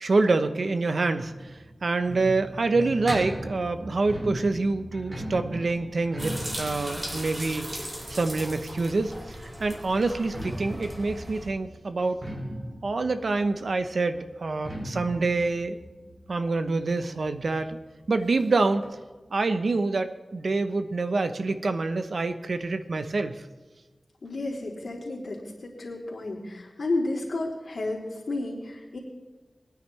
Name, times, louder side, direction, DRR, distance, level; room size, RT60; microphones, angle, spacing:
voice 1, 0.0-1.3 1.8-7.7 8.1-12.2 12.8-15.8 16.3-17.8 18.1-18.8 19.3-23.4, right 3 dB, 75° right, 9 dB, 0.8 m, -26 dB
sound 1, 1.3-8.9 10.1-17.4 17.7-17.8 18.1-18.2 18.8-18.9, right 1 dB, 55° right, 2.9 m, -38 dB
sound 2, 6.2-11.5, equal, 30° right, 3.0 m, -38 dB
voice 2, 24.2-28.0 28.3-29.0, left 2 dB, 80° left, -4 dB, 3.2 m, -32 dB
21.5 x 9.7 x 3.3 m, 1.3 s
wide cardioid pair, 85°, 0 cm